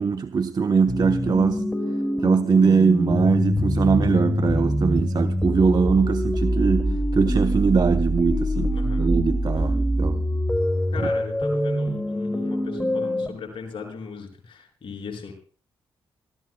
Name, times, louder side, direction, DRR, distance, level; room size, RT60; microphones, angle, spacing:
voice 1, 0.0-1.7 2.2-10.2, right 5 dB, 40° right, 0.9 m, -21 dB
sound 1, 0.9-13.3, equal, 10° left, 2.2 m, -24 dB
voice 2, 8.7-9.0 10.9-15.3, left 5 dB, 55° left, 6.0 m, -38 dB
26.0 x 15.0 x 2.2 m
hypercardioid pair, 40°, 10 cm